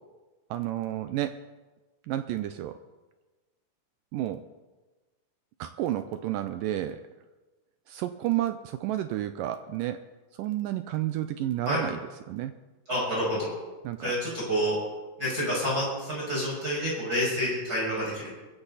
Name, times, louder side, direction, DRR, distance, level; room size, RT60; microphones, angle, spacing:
voice 1, 0.5-1.4 2.1-2.8 4.1-4.4 5.6-7.0 7.9-10.0 10.3-12.0 12.3-12.5 13.8-14.1, right 13 dB, 85° right, 10 dB, 1.9 m, -31 dB
voice 2, 12.9-13.5 14.0-14.8 15.2-18.3, equal, 20° right, -7 dB, 6.5 m, -28 dB
22.5 x 14.5 x 4.1 m, 1.2 s
omnidirectional pair, 4.5 m